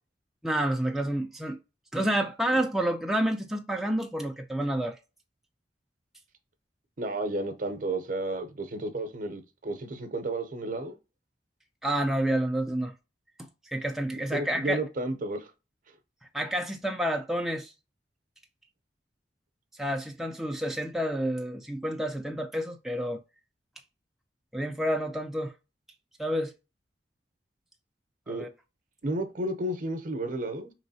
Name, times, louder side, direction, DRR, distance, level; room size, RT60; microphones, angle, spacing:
voice 1, 0.4-1.6 1.9-5.0 11.8-12.9 13.7-14.8 16.3-17.7 19.8-23.2 24.5-25.5 26.2-26.5 28.3-28.5, right 1 dB, ahead, 0.3 m, -29 dB
voice 2, 7.0-11.0 14.3-15.5 28.3-28.5 29.0-30.7, right 2 dB, 50° right, 0.6 m, -32 dB
4.6 x 3.1 x 2.6 m
head